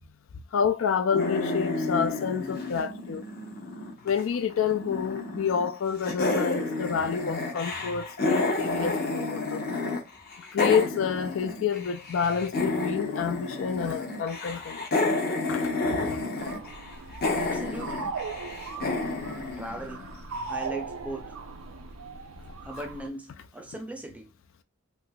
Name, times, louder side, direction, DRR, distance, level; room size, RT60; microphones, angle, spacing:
voice 1, 0.5-3.2 4.0-9.6 10.5-14.9 15.5-16.2, left 7 dB, 60° left, 0.4 m, -28 dB
sound 1, 1.1-4.2 4.5-5.7 6.0-10.0 10.3-20.3, left 2 dB, 45° left, 0.8 m, -30 dB
sound 2, 16.4-23.1, right 4 dB, 75° right, 0.5 m, -38 dB
voice 2, 17.3-18.2 18.8-19.2 19.6-20.1 20.4-21.3 22.6-24.3, right 1 dB, 5° right, 0.4 m, -39 dB
3.2 x 2.9 x 2.2 m
head